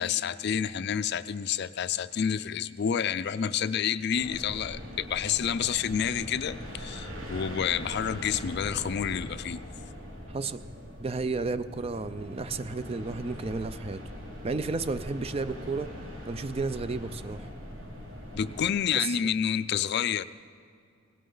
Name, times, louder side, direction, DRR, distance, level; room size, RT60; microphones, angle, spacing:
voice 1, 0.0-9.6 18.3-20.2, left 8 dB, 50° left, 14 dB, 0.4 m, -29 dB
sound 1, 4.1-18.7, equal, 65° right, 3.0 m, -41 dB
voice 2, 10.3-10.6 11.0-14.0 14.4-15.9 16.3-17.5 18.9-19.2, right 3 dB, 30° right, 13 dB, 0.4 m, -32 dB
18.0 x 17.0 x 3.9 m, 2.3 s
head